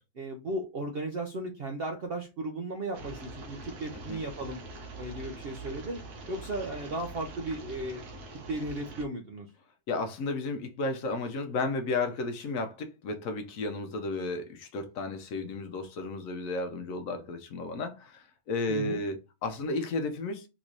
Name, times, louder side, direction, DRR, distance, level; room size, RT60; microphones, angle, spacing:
voice 1, 0.2-4.6 5.0-6.0 6.3-8.0 8.5-9.5 18.7-19.0, right 2 dB, 60° right, 0.6 m, -35 dB
sound 1, 2.9-9.0, right 2 dB, 85° right, 1.4 m, -44 dB
voice 2, 9.9-20.5, left 3 dB, 65° left, 1.0 m, -33 dB
3.6 x 3.0 x 2.5 m
omnidirectional pair, 1.6 m